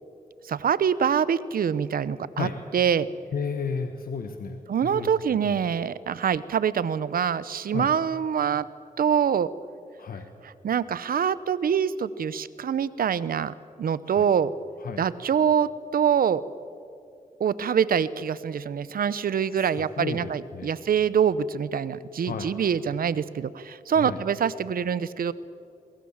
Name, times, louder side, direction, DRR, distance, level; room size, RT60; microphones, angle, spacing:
voice 1, 0.4-3.1 4.7-8.7 9.0-9.5 10.4-14.5 15.0-16.4 17.4-25.3, right 8 dB, 80° right, 17 dB, 0.8 m, -25 dB
voice 2, 3.3-5.1 5.5-5.6 7.7-7.9 10.0-10.3 14.1-14.3 14.8-15.0 19.5-20.7 22.2-22.5 24.0-24.2, left 5 dB, 75° left, 6 dB, 1.4 m, -33 dB
24.0 x 22.5 x 7.4 m, 2.5 s
cardioid pair, 70°, 15 cm